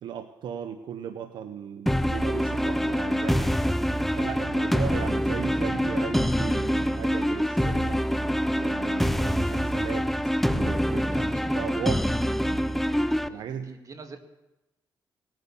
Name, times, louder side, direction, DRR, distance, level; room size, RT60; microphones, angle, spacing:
voice 1, 0.0-3.6 4.2-8.0 8.5-10.1 10.5-12.1 13.3-13.8, right 8 dB, 75° right, 8 dB, 0.9 m, -36 dB
sound 1, 1.9-13.3, equal, ahead, 0.7 m, -25 dB
voice 2, 11.1-11.5 12.0-12.1 12.4-12.6 13.2-14.2, right 4 dB, 50° right, 6 dB, 2.1 m, -46 dB
19.5 x 9.3 x 7.2 m, 0.99 s
cardioid pair, 75°, 8 cm